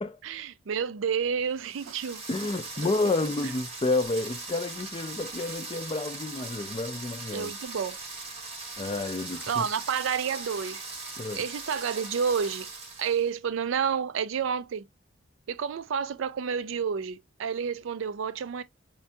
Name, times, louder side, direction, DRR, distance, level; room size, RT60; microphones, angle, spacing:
voice 1, 0.2-2.2 7.3-8.0 9.5-10.8 11.4-12.7 13.0-14.9 15.5-18.6, right 7 dB, 65° right, 0.4 m, -30 dB
sound 1, 1.6-13.3, right 3 dB, 30° right, 0.9 m, -40 dB
voice 2, 2.3-7.5 8.8-9.7 11.2-11.4, left 2 dB, 25° left, 0.4 m, -30 dB
5.1 x 2.3 x 2.6 m
head